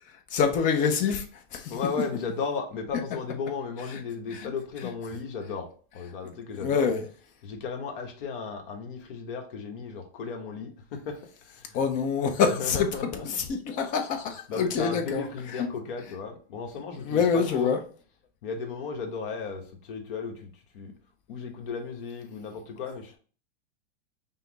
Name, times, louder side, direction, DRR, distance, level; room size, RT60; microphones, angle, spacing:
voice 1, 0.1-1.8 4.3-4.5 6.6-7.0 11.7-12.9 13.4-15.2 15.6-15.7 17.0-17.8, left 6 dB, 25° left, 0.5 m, -26 dB
voice 2, 1.7-6.9 7.4-11.8 12.4-13.4 14.5-17.8 18.4-20.9 21.3-23.2, left 5 dB, 55° left, 1.1 m, -35 dB
5.5 x 2.0 x 3.9 m
supercardioid pair, 150°, 32 cm